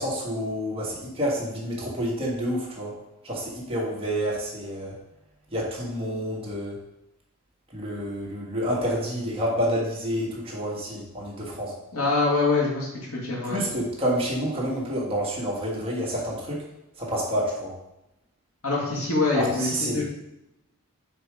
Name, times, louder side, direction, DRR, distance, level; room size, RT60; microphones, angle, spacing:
voice 1, 0.0-2.9 3.2-4.9 5.5-6.8 7.7-11.7 13.5-16.6 17.0-17.7 19.3-20.0, equal, 25° right, -4 dB, 1.7 m, -28 dB
voice 2, 11.9-13.6 18.6-20.0, left 3 dB, 85° left, -2 dB, 2.1 m, -24 dB
5.9 x 4.3 x 4.9 m, 0.87 s
head